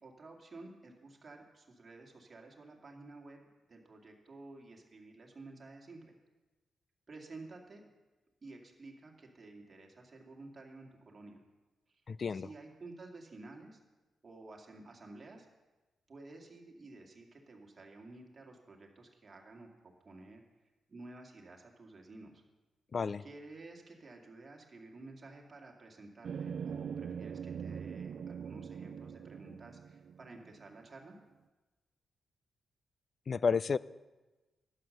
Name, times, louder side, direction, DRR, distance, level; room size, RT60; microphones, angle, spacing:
voice 1, 0.0-3.4 3.7-6.2 7.1-7.9 8.4-11.4 11.9-12.0 12.3-13.8 14.2-15.5 16.1-19.7 20.0-20.4 20.9-22.4 23.2-31.2, right 2 dB, 30° right, 0 dB, 2.2 m, -52 dB
voice 2, 12.1-12.5 22.9-23.2 33.3-33.8, left 5 dB, 40° left, 19 dB, 0.3 m, -31 dB
sound 1, 26.2-30.7, right 7 dB, 60° right, 0.3 m, -42 dB
12.0 x 9.1 x 6.5 m, 1.1 s
cardioid pair, 130°, 0 cm